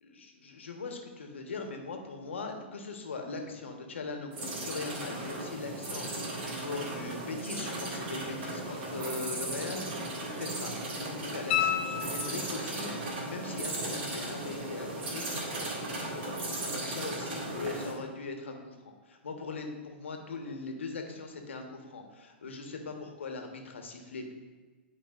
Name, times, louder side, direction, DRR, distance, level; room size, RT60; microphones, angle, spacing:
voice 1, 0.1-9.9 10.4-18.8 19.1-24.3, left 4 dB, 90° left, 3 dB, 1.1 m, -40 dB
sound 1, 4.3-18.0, right 2 dB, 60° right, 2.0 m, -36 dB
sound 2, 11.5-12.8 15.6-15.7, left 10 dB, 60° left, 0.5 m, -31 dB
11.5 x 4.7 x 2.4 m, 1.4 s
hypercardioid pair, 125°, 6 cm